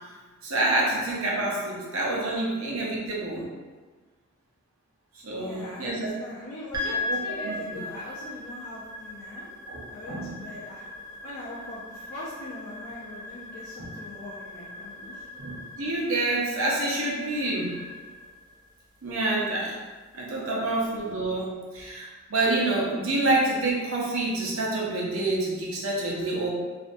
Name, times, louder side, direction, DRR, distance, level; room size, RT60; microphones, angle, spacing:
voice 1, 0.4-3.5 5.2-6.1 7.1-7.2 7.4-7.8 9.7-10.3 13.8-13.9 15.4-17.7 19.0-19.8 20.1-26.5, right 2 dB, 80° right, -4 dB, 0.7 m, -27 dB
voice 2, 5.3-9.5 9.9-10.9 11.2-15.2 20.3-20.7, left 1 dB, 70° left, -8 dB, 0.5 m, -42 dB
sound 1, 6.7-21.1, left 2 dB, 20° right, 0.3 m, -39 dB
2.5 x 2.2 x 2.5 m, 1.4 s
head